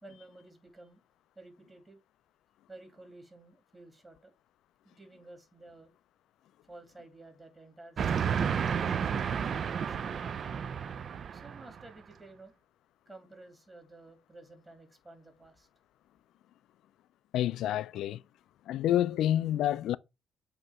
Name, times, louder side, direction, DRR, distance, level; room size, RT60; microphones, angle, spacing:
voice 1, 0.0-1.0 1.4-2.0 2.7-4.3 4.8-5.9 6.6-8.1 8.8-10.9 11.3-12.5 13.1-15.7, right 2 dB, 20° right, 2.3 m, -53 dB
Train, 8.0-11.9, right 7 dB, 55° right, 0.4 m, -31 dB
voice 2, 17.3-18.2 18.7-20.0, left 12 dB, 85° left, 0.3 m, -28 dB
7.7 x 2.9 x 4.7 m
cardioid pair, 90°, 0 cm